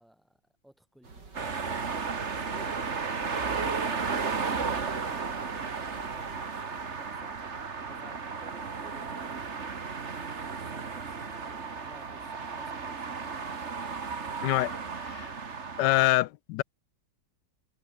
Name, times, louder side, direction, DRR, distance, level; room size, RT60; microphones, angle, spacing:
voice 1, 0.0-2.9 7.9-10.0 10.4-13.5, right 1 dB, ahead, 5.0 m, -56 dB
sound 1, 1.0-6.5, right 4 dB, 75° right, 4.4 m, -50 dB
sound 2, 1.3-16.1, right 5 dB, 40° right, 2.0 m, -34 dB
voice 2, 14.4-15.3 15.8-16.6, left 17 dB, 80° left, 1.2 m, -26 dB
omnidirectional pair, 1.9 m